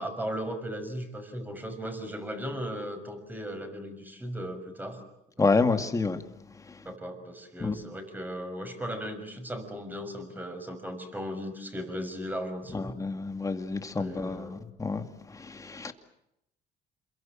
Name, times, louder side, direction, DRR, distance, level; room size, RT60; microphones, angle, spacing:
voice 1, 0.0-5.0 5.4-5.5 6.8-13.0 14.0-14.6, equal, 10° right, 6.1 m, -37 dB
voice 2, 5.4-6.2 7.6-7.8 12.7-15.0 15.5-15.9, left 4 dB, 20° left, 2.3 m, -28 dB
27.5 x 23.0 x 7.6 m
cardioid pair, 110°, 17 cm